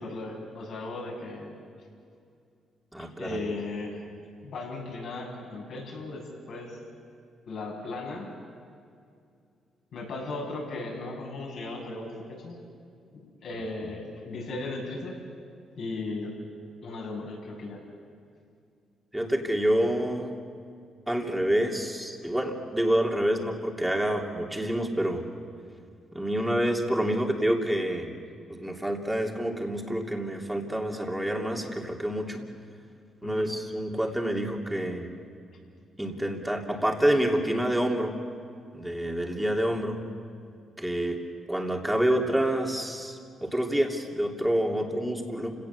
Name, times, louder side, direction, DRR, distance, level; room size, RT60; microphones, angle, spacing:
voice 1, 0.0-1.5 3.2-4.0 4.4-6.8 7.5-8.3 9.9-12.6 13.4-15.2 15.8-16.4 16.8-17.8 33.2-33.5, left 2 dB, 70° left, -2 dB, 7.1 m, -36 dB
voice 2, 2.9-3.4 19.1-20.3 21.1-25.2 26.1-28.2 28.5-32.4 33.2-35.1 36.0-38.1 38.7-40.0 40.8-41.2 41.5-45.5, right 1 dB, 5° right, 1 dB, 2.9 m, -27 dB
29.5 x 17.5 x 7.2 m, 2.4 s
cardioid pair, 90°, 0 cm